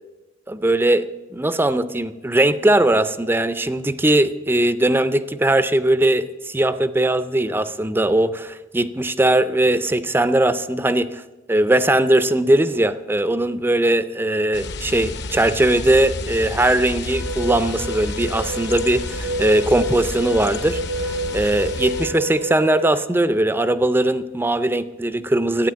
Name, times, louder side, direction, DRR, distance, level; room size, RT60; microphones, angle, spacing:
voice 1, 0.5-1.1 1.3-11.2 11.5-25.7, right 1 dB, 10° right, 13 dB, 0.4 m, -19 dB
sound 1, 14.5-22.1, left 2 dB, 55° left, 0.9 m, -31 dB
sound 2, 17.1-23.0, right 1 dB, 55° right, 0.6 m, -29 dB
12.5 x 9.0 x 8.7 m, 1.1 s
head